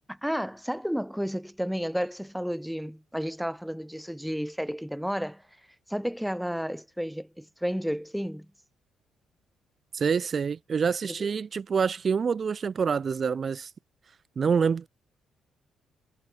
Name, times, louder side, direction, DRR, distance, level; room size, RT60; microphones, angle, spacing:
voice 1, 0.1-5.4 5.9-8.5 11.2-11.3, equal, ahead, 5.4 m, -32 dB
voice 2, 9.9-13.7 14.4-14.9, right 6 dB, 45° right, 4.9 m, -26 dB
cardioid pair, 90°, 0 cm